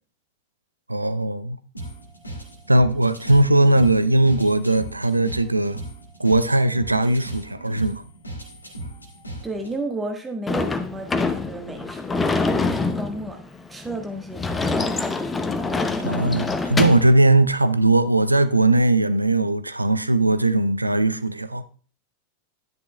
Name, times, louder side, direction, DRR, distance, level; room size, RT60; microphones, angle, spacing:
voice 1, 0.9-1.6 2.7-5.8 6.2-8.0 16.0-21.6, right 2 dB, 85° right, 0.5 m, -19 dB
sound 1, 1.7-9.7, right 1 dB, 80° left, 1.8 m, -38 dB
voice 2, 9.4-13.4 13.7-15.3, right 2 dB, 10° right, 1.4 m, -33 dB
Sliding door / Slam, 10.5-17.1, left 3 dB, 15° left, 0.7 m, -25 dB
10.5 x 9.9 x 2.2 m
figure-of-eight pair, 90°, 0 cm